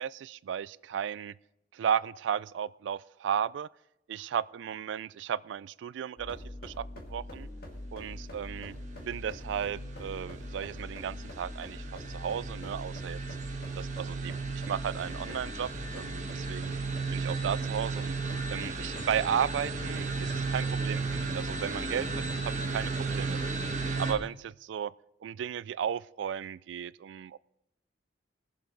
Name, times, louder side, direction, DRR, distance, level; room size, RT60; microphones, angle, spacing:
voice 1, 0.0-1.3 1.7-3.7 4.1-7.5 7.9-8.8 9.1-13.2 13.7-16.8 17.1-18.2 18.5-23.5 24.0-24.9 25.2-27.4, right 8 dB, 80° right, 0.3 m, -34 dB
sound 1, 6.2-24.2, left 1 dB, 55° left, 1.9 m, -43 dB
sound 2, 8.6-24.1, right 4 dB, 40° right, 1.3 m, -35 dB
20.5 x 7.5 x 3.9 m
head